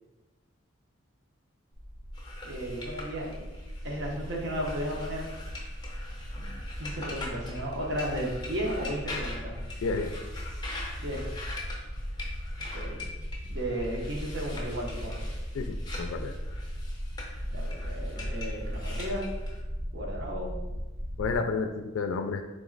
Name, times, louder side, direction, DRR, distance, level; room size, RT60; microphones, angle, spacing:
sound 1, 1.7-21.4, equal, 90° right, 0.9 m, -37 dB
sound 2, 2.1-19.6, left 2 dB, 20° left, 0.6 m, -43 dB
voice 1, 2.4-3.5 3.8-5.3 6.3-9.6 11.0-11.2 12.7-13.1 13.5-15.2 17.5-19.3 19.9-20.5, equal, 60° right, -1 dB, 0.9 m, -34 dB
voice 2, 9.8-10.1 15.5-16.3 21.2-22.4, left 4 dB, 90° left, 6 dB, 0.3 m, -31 dB
3.7 x 3.0 x 3.8 m, 1.1 s
head